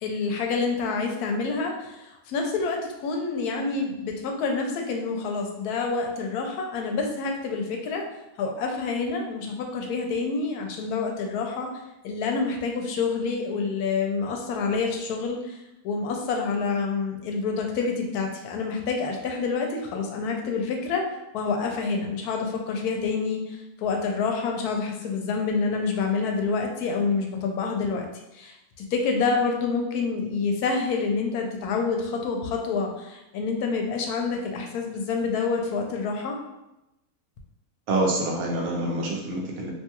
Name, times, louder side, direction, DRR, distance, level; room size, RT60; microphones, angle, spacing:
voice 1, 0.0-8.0 8.4-11.7 12.0-15.6 15.8-21.0 21.3-28.1 28.3-36.4, left 4 dB, 85° left, 2 dB, 1.1 m, -27 dB
voice 2, 37.9-39.7, right 1 dB, 75° right, -1 dB, 1.1 m, -26 dB
2.9 x 2.3 x 2.8 m, 0.92 s
omnidirectional pair, 1.6 m